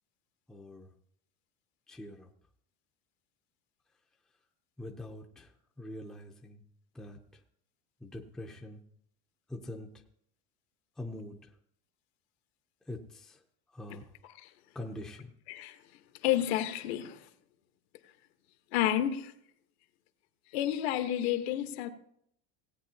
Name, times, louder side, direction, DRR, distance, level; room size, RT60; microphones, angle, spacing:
voice 1, 0.5-0.9 1.9-2.3 4.8-5.5 5.8-6.6 6.9-7.2 8.0-8.8 9.5-9.9 11.0-11.4 12.9-13.4 13.7-14.0 14.7-15.3, left 1 dB, ahead, 0.5 m, -43 dB
voice 2, 16.2-17.2 18.7-19.3 20.5-21.9, left 12 dB, 75° left, 1.2 m, -30 dB
17.5 x 8.8 x 2.8 m
cardioid pair, 165°, 32 cm